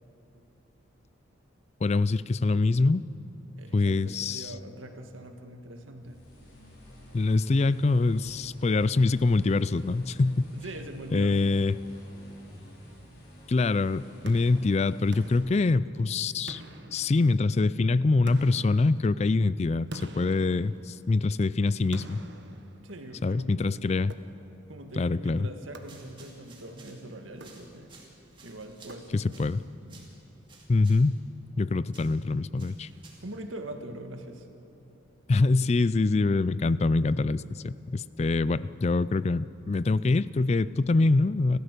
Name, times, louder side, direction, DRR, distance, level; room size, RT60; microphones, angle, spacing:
voice 1, 1.8-3.1 3.7-4.5 7.1-10.5 11.1-11.8 13.5-16.6 16.9-22.2 23.2-24.1 25.0-25.5 29.1-29.6 30.7-31.2 31.6-32.9 35.3-41.6, left 3 dB, 35° left, 18 dB, 0.3 m, -24 dB
voice 2, 3.6-6.2 10.5-11.6 22.8-23.8 24.7-27.9 28.4-29.6 29.9-30.1 31.6-31.7 32.9-34.5 38.3-38.6, right 1 dB, 85° right, 5 dB, 1.8 m, -43 dB
sound 1, 6.0-15.4, equal, 50° left, 5.4 m, -50 dB
sound 2, 14.3-16.1 16.5-17.6 18.3-21.3 21.9-23.3 24.1-24.7 25.7-26.5 27.3-28.1 28.9-29.6, right 1 dB, 60° right, 1.3 m, -46 dB
sound 3, 25.7-33.4, right 3 dB, 25° right, 2.7 m, -56 dB
29.5 x 13.0 x 6.7 m, 2.9 s
head